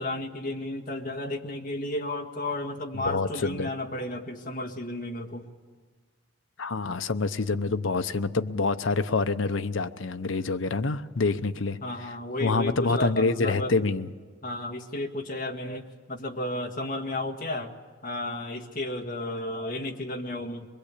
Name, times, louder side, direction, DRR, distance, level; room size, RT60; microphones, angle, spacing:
voice 1, 0.0-5.5 11.8-13.7 14.4-17.7 18.0-20.7, left 1 dB, 45° left, 3 dB, 1.8 m, -33 dB
voice 2, 3.0-3.7 6.6-11.8 12.4-14.1, left 3 dB, 80° left, 10 dB, 0.8 m, -26 dB
22.5 x 22.5 x 8.4 m, 1.5 s
head